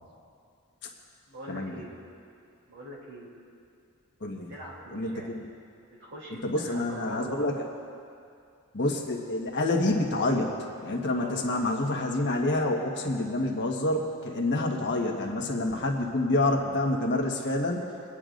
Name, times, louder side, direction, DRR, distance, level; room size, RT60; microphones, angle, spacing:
voice 1, 1.3-1.9 2.7-3.3 4.5-5.3 5.8-7.6 11.0-11.8 14.5-14.9, right 1 dB, 60° right, -5 dB, 3.2 m, -43 dB
voice 2, 4.2-4.5 4.9-5.5 6.4-7.5 8.7-17.9, left 2 dB, 50° left, 0 dB, 1.3 m, -28 dB
25.5 x 9.8 x 2.5 m, 2.4 s
head